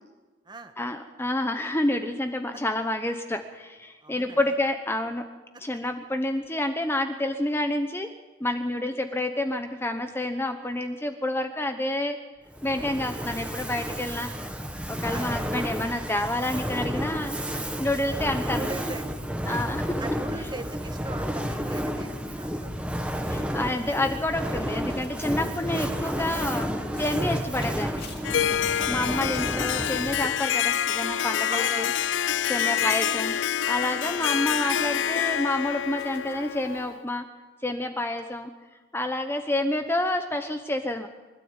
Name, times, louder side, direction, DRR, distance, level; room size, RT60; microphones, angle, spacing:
voice 1, 0.8-5.2 5.6-8.1 8.4-12.2 12.6-14.3 14.9-17.4 17.8-18.7 19.4-19.8 23.3-26.7 27.0-28.0 28.9-31.9 32.5-33.4 33.7-37.2 37.6-38.5 38.9-41.1, left 1 dB, 15° left, 7 dB, 0.9 m, -28 dB
voice 2, 4.0-4.5 15.1-15.3 17.5-17.6 18.5-19.0 19.4-19.6 20.0-22.7 28.8-29.3 31.5-31.9 32.6-32.8, right 2 dB, 25° right, 8 dB, 1.5 m, -40 dB
Fire, 12.5-30.5, equal, 5° right, 1.4 m, -31 dB
sound 1, 23.1-34.0 34.2-36.3 36.7-36.8 37.1-37.2, left 6 dB, 55° left, 3.2 m, -51 dB
Harp, 28.2-37.0, left 9 dB, 90° left, 0.6 m, -27 dB
24.0 x 13.0 x 8.9 m, 1.3 s
head